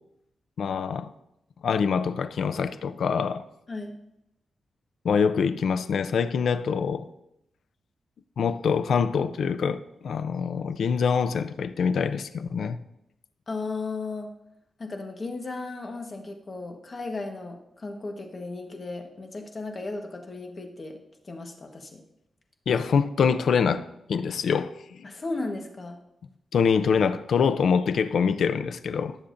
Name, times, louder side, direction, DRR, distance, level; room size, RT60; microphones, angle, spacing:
voice 1, 0.6-1.1 1.6-3.4 5.0-7.1 8.4-12.8 22.7-25.1 26.5-29.2, left 6 dB, 70° left, 0.5 m, -25 dB
voice 2, 13.5-14.3 14.8-21.0 21.2-22.0 25.0-26.0, left 3 dB, 35° left, 1.3 m, -35 dB
18.0 x 7.1 x 2.6 m
wide cardioid pair, 115°, 0 cm